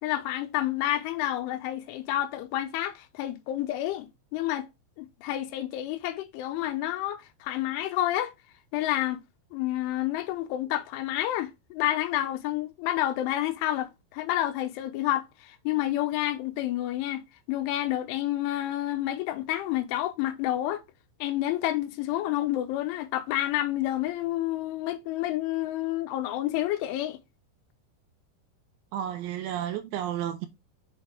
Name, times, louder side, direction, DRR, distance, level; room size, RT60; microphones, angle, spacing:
voice 1, 0.0-4.7 5.0-8.3 8.7-9.2 9.5-17.2 17.5-20.8 21.2-27.2, left 14 dB, 85° left, 3.2 m, -29 dB
voice 2, 28.9-30.5, right 10 dB, 80° right, 2.9 m, -32 dB
7.1 x 4.4 x 3.4 m
omnidirectional pair, 5.5 m